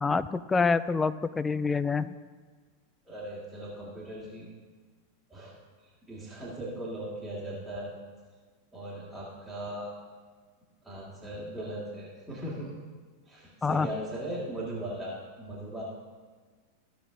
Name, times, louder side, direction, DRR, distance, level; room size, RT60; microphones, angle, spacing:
voice 1, 0.0-2.1 13.6-13.9, left 4 dB, 15° left, 14 dB, 0.3 m, -26 dB
voice 2, 3.1-4.5 5.3-5.5 6.1-7.9 8.7-9.9 10.8-12.7 13.2-15.8, right 1 dB, 5° right, -9 dB, 2.2 m, -38 dB
15.0 x 6.5 x 3.7 m, 1.5 s
figure-of-eight pair, 90°, 0 cm